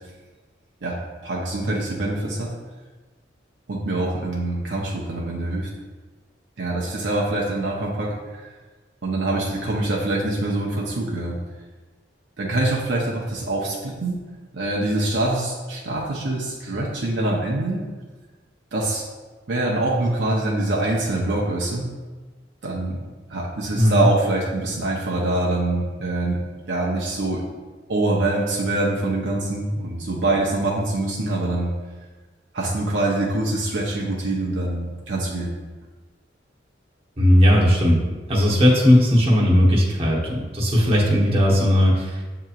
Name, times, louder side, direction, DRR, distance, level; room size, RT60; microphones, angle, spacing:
voice 1, 1.2-2.5 3.7-5.7 6.6-8.5 9.0-11.4 12.4-14.2 14.5-17.8 18.7-19.0 19.5-21.9 22.6-23.0 23.3-26.4 26.7-27.4 27.9-31.7 32.5-35.5, right 2 dB, 70° right, -4 dB, 0.7 m, -24 dB
voice 2, 23.7-24.1 37.2-38.0 38.3-42.2, equal, 35° right, -4 dB, 0.9 m, -17 dB
7.7 x 2.8 x 2.4 m, 1.3 s
head